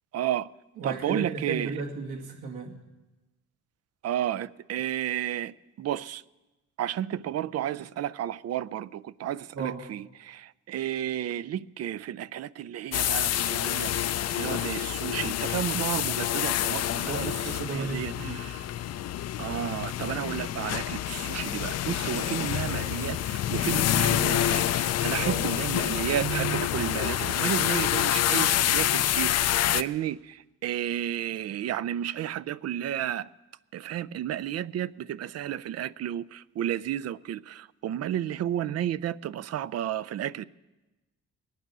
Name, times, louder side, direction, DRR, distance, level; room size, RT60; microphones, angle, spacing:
voice 1, 0.1-0.5 0.8-1.8 4.0-6.2 6.8-18.7 19.4-33.3 33.7-40.4, right 11 dB, 55° right, 0.5 m, -32 dB
voice 2, 0.8-2.8 9.5-9.8 17.0-18.4 25.1-25.5, right 4 dB, 80° right, 2.4 m, -34 dB
sound 1, 12.9-29.8, left 12 dB, 60° left, 0.5 m, -27 dB
21.5 x 9.4 x 6.1 m
cardioid pair, 90°, 30 cm